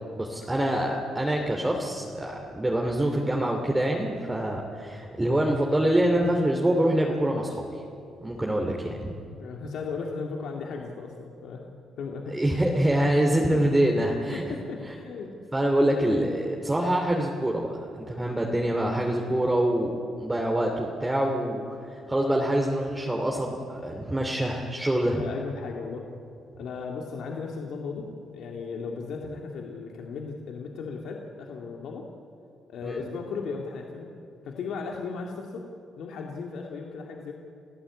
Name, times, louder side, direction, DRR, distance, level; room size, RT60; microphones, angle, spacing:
voice 1, 0.2-7.8 8.2-9.2 12.3-14.5 14.8-14.9 15.5-19.9 20.2-25.2 32.8-33.0, right 1 dB, 15° right, 0 dB, 2.8 m, -25 dB
voice 2, 9.4-12.3 13.4-13.6 14.3-15.3 25.1-26.1 26.6-32.0 32.7-34.1 34.4-35.7 36.0-37.3, left 5 dB, 75° left, 1 dB, 2.3 m, -36 dB
29.0 x 16.0 x 8.5 m, 2.6 s
cardioid pair, 90°, 0 cm